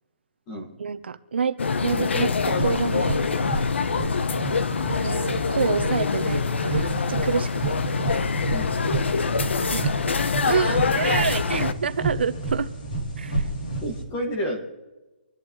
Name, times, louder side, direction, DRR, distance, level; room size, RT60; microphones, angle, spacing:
voice 1, 0.8-1.6 1.8-3.2 4.9-7.7 9.7-12.7 13.2-13.5, right 6 dB, 65° right, 0.9 m, -28 dB
sound 1, 1.6-11.7, left 5 dB, 75° left, 0.9 m, -25 dB
sound 2, 2.4-14.0, right 3 dB, 45° left, 3.1 m, -31 dB
voice 2, 13.8-14.6, equal, 15° left, 1.9 m, -30 dB
26.0 x 11.5 x 3.2 m
hypercardioid pair, 175°, 6 cm